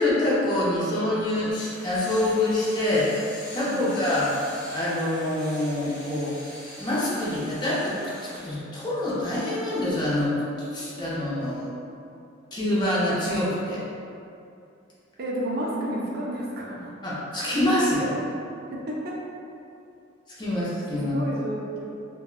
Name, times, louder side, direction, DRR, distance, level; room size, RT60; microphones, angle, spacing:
voice 1, 0.0-3.2 3.5-4.3 4.7-6.3 6.8-10.3 10.7-11.7 12.5-13.8 17.0-18.2 20.4-21.2, left 1 dB, 20° left, -8 dB, 0.6 m, -25 dB
Angle grinder, 1.5-8.4, equal, 5° left, 1.3 m, -43 dB
voice 2, 15.2-16.9 18.7-19.2 21.0-21.8, right 1 dB, 50° right, -3 dB, 0.4 m, -31 dB
3.4 x 2.2 x 2.4 m, 2.6 s
head